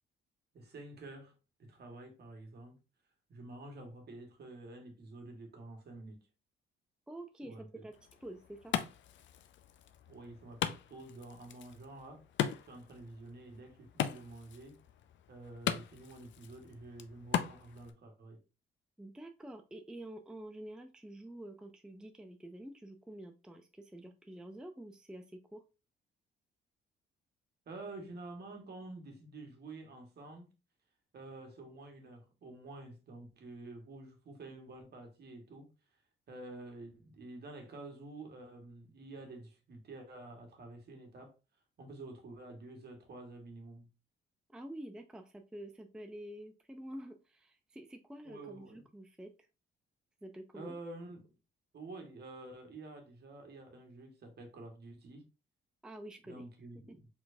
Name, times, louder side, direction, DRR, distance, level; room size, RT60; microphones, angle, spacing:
voice 1, 0.5-2.8 3.3-6.2 7.4-7.9 10.1-12.2 12.6-14.8 15.3-18.4 27.6-30.5 31.1-36.0 36.3-41.3 41.8-43.9 48.2-48.8 50.5-51.3 51.7-55.3 56.2-57.1, right 2 dB, 55° right, 1.6 m, -49 dB
voice 2, 7.1-7.6 7.8-7.9 8.2-8.7 19.0-25.6 44.5-49.3 50.2-50.8 55.8-56.4, right 1 dB, 5° right, 0.5 m, -48 dB
Wood, 7.9-17.9, left 10 dB, 70° left, 0.5 m, -40 dB
4.5 x 4.0 x 2.7 m
cardioid pair, 90°, 20 cm